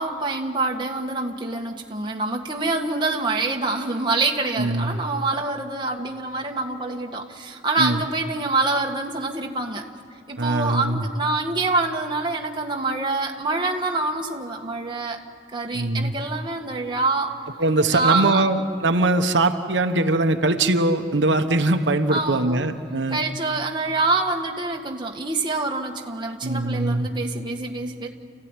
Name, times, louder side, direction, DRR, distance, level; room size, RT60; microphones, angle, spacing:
voice 1, 0.0-9.8 10.1-15.2 15.5-17.3 17.9-18.6 22.1-22.7 23.1-28.1, right 3 dB, 25° right, 1 dB, 1.7 m, -26 dB
voice 2, 4.6-5.0 7.8-8.0 10.4-11.0 15.7-16.1 17.6-23.2 26.4-27.1, right 2 dB, 85° right, 6 dB, 1.1 m, -21 dB
29.0 x 15.5 x 9.8 m, 2.2 s
head